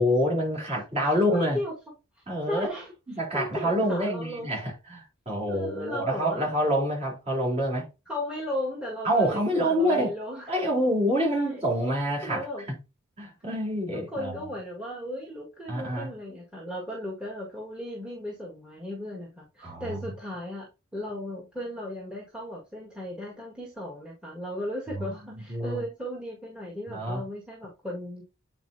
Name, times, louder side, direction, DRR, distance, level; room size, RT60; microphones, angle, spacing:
voice 1, 0.0-1.6 2.3-2.7 3.2-7.9 9.0-10.1 10.5-12.8 13.2-14.3 15.7-16.1 19.6-20.0 25.0-25.8 26.9-27.2, equal, 30° right, 3.6 m, -27 dB
voice 2, 0.7-1.7 2.2-2.9 3.3-4.5 5.5-6.5 8.1-10.5 11.2-11.6 12.2-12.7 13.9-28.2, left 1 dB, 5° right, 1.8 m, -36 dB
8.8 x 4.3 x 2.7 m
head